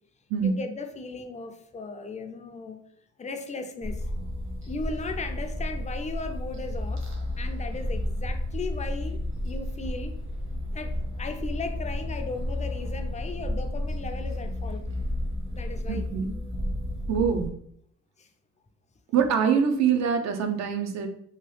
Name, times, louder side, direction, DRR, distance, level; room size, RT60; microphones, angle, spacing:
voice 1, 0.4-2.8 3.2-4.1 4.7-7.1 7.4-10.2 10.7-14.8 15.5-16.0 18.2-18.3, left 3 dB, 25° left, 7 dB, 0.3 m, -36 dB
sound 1, 3.8-17.5, left 1 dB, 45° right, 0.9 m, -32 dB
voice 2, 15.9-16.3 17.1-17.5 19.1-21.1, right 7 dB, 60° right, 4 dB, 0.5 m, -24 dB
2.9 x 2.3 x 3.1 m, 0.67 s
cardioid pair, 90°, 30 cm